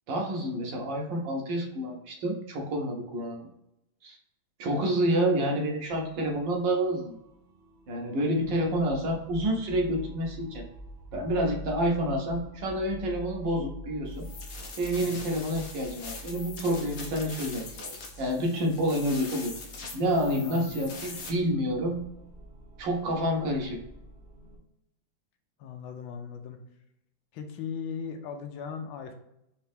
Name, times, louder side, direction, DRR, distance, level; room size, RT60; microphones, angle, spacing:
voice 1, 0.1-3.5 4.0-4.2 4.6-7.2 7.9-10.6 11.1-14.3 14.8-19.5 19.9-22.0 22.8-23.8, equal, 70° right, 1 dB, 1.5 m, -28 dB
sound 1, 5.9-24.6, left 1 dB, 50° right, 0.8 m, -46 dB
voice 2, 8.1-8.7 15.0-15.2 20.4-20.8 25.6-26.6 27.3-29.1, left 6 dB, 80° left, 5 dB, 1.4 m, -39 dB
sound 2, 14.2-21.3, left 4 dB, 55° left, 0.9 m, -42 dB
4.2 x 2.9 x 3.5 m, 0.83 s
omnidirectional pair, 2.2 m